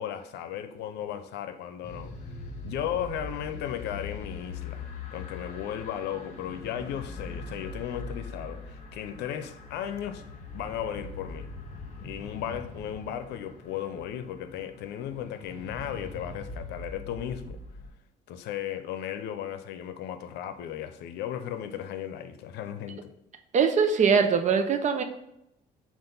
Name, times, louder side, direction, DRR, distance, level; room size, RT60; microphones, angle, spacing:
voice 1, 0.0-2.1 2.6-4.8 5.1-10.2 10.5-11.5 12.0-17.6 18.3-23.1, left 10 dB, 80° left, 0.6 m, -35 dB
sound 1, 1.8-17.9, left 3 dB, 45° left, 1.7 m, -42 dB
voice 2, 23.5-25.0, right 6 dB, 45° right, 0.8 m, -22 dB
7.5 x 2.6 x 5.3 m
cardioid pair, 110°, 17 cm